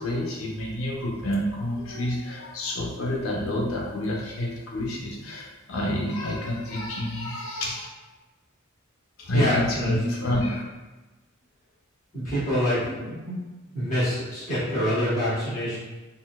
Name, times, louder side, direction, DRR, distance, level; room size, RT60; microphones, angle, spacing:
voice 1, 0.0-7.9 9.2-10.6, left 1 dB, 75° left, -2 dB, 0.7 m, -28 dB
voice 2, 9.3-10.0 12.1-13.4 13.7-15.8, equal, 40° left, -12 dB, 1.3 m, -26 dB
3.8 x 2.0 x 2.3 m, 1.2 s
head